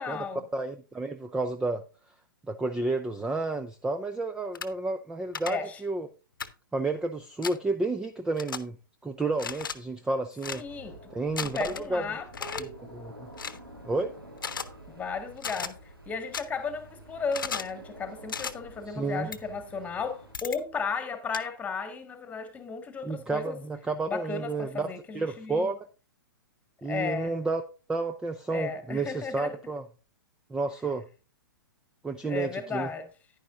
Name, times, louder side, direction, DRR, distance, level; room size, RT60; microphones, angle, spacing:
voice 1, 0.0-0.4 5.5-5.8 10.5-11.0 11.4-12.7 14.9-15.8 16.1-23.6 24.1-25.7 26.9-27.3 28.5-29.5 32.2-33.1, left 5 dB, 10° left, 1.6 m, -34 dB
voice 2, 0.5-1.8 2.5-6.1 6.7-8.8 9.0-10.6 11.1-12.0 12.6-13.3 13.8-14.1 18.9-19.3 23.0-25.9 26.8-27.6 27.9-29.8 30.5-31.0 32.0-32.9, right 3 dB, 5° right, 0.5 m, -31 dB
sound 1, 4.5-4.7 5.3-5.5 6.4-6.5 7.4-7.6 8.4-8.6 9.3-9.7 10.4-10.6 11.4-11.9 12.3-12.6 13.4-13.6 14.4-14.7 15.4-15.7 16.3-16.4 17.3-17.7 18.3-18.5 19.3-19.4 20.3-20.6 21.3-21.4, left 6 dB, 65° left, 0.9 m, -35 dB
sound 2, 10.6-20.4, right 1 dB, 85° right, 3.1 m, -49 dB
10.5 x 10.0 x 2.5 m
figure-of-eight pair, 115°, 12 cm